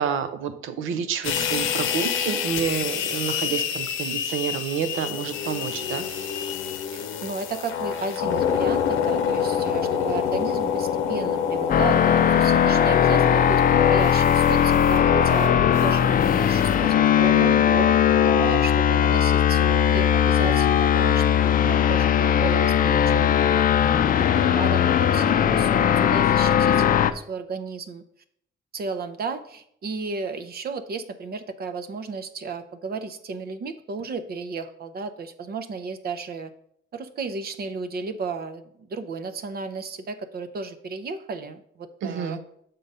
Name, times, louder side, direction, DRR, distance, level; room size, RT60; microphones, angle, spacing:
voice 1, 0.0-6.0 42.0-42.4, right 7 dB, 85° right, 9 dB, 0.8 m, -29 dB
sound 1, 1.2-16.9, left 8 dB, 85° left, 0.7 m, -27 dB
voice 2, 6.9-13.6 13.9-28.0 28.7-36.5 36.9-42.4, right 4 dB, 50° right, 10 dB, 0.7 m, -33 dB
sound 2, 11.7-27.1, left 9 dB, 45° left, 0.4 m, -19 dB
6.8 x 3.8 x 5.4 m, 0.70 s
cardioid pair, 90°, 20 cm